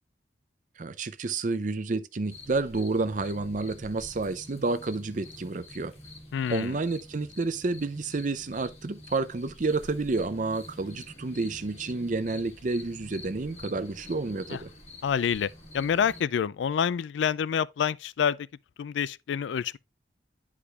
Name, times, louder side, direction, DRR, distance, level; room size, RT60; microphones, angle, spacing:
voice 1, 0.8-5.9 6.5-14.7, right 3 dB, 45° right, 0.5 m, -30 dB
sound 1, 2.3-16.2, left 1 dB, 35° left, 1.9 m, -47 dB
voice 2, 6.3-6.8 14.5-14.6 15.0-18.4 18.8-19.8, left 7 dB, 90° left, 0.3 m, -27 dB
9.9 x 4.9 x 2.3 m
head